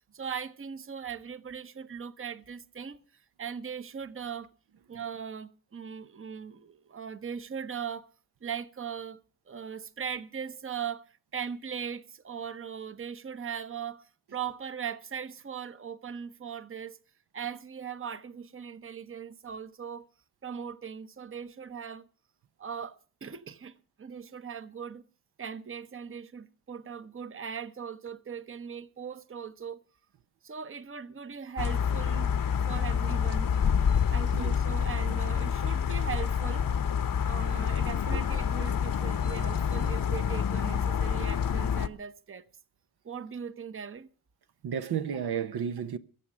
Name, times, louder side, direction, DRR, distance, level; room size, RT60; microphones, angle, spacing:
voice 1, 0.0-3.0 3.4-4.5 4.9-8.1 8.4-9.2 9.5-11.0 11.3-14.0 14.3-17.0 17.3-20.0 20.4-22.1 22.6-25.0 25.4-29.8 30.4-32.3 32.7-33.5 34.1-36.7 37.2-42.5 43.0-44.1, right 7 dB, 35° right, 0.9 m, -39 dB
sound 1, 31.6-41.9, left 7 dB, 55° left, 0.9 m, -27 dB
voice 2, 44.6-46.0, right 8 dB, 75° right, 1.0 m, -32 dB
21.5 x 7.3 x 6.2 m
cardioid pair, 85°, 40 cm